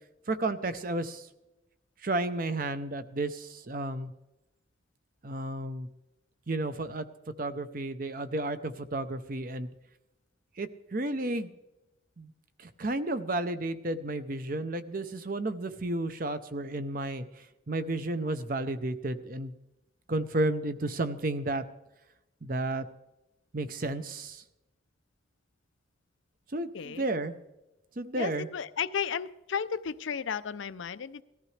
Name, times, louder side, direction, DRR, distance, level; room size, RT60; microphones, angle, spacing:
voice 1, 0.3-1.3 2.0-4.1 5.2-5.9 6.5-7.1 7.4-9.7 10.6-11.5 12.2-12.3 12.6-19.5 20.1-21.6 22.4-22.9 23.5-24.4 26.5-27.3 28.0-28.5, right 2 dB, 45° right, 11 dB, 0.7 m, -32 dB
voice 2, 26.7-27.1 28.2-31.2, left 7 dB, 75° left, 14 dB, 0.5 m, -34 dB
19.0 x 14.0 x 3.3 m, 0.97 s
head